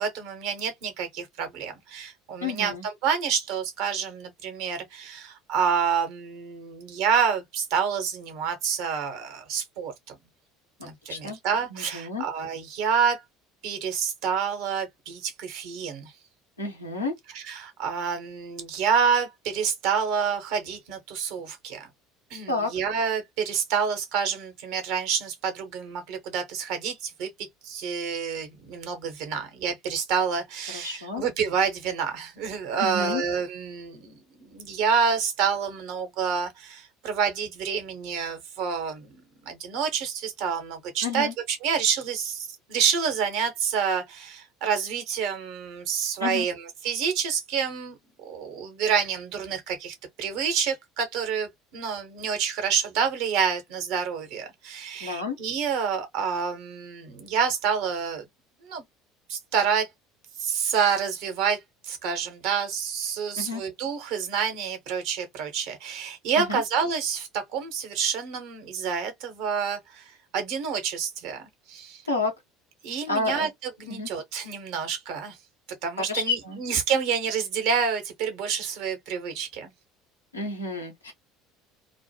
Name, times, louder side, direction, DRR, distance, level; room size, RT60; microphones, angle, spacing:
voice 1, 0.0-10.1 10.8-13.2 13.6-16.1 17.3-21.9 22.3-27.3 27.6-58.2 58.6-58.8 59.3-59.9 60.4-72.0 72.8-75.4 75.8-79.7, right 6 dB, 60° right, 0.9 m, -28 dB
voice 2, 2.4-2.9 10.8-11.4 11.7-12.2 16.6-17.1 22.5-22.7 30.7-31.2 32.8-33.2 41.0-41.3 46.2-46.5 55.0-55.4 63.4-63.6 66.4-66.6 72.1-72.3 73.1-73.5 73.9-74.1 76.1-76.6 80.3-81.1, left 3 dB, 90° left, 0.8 m, -30 dB
2.4 x 2.2 x 2.7 m
figure-of-eight pair, 65°, 0 cm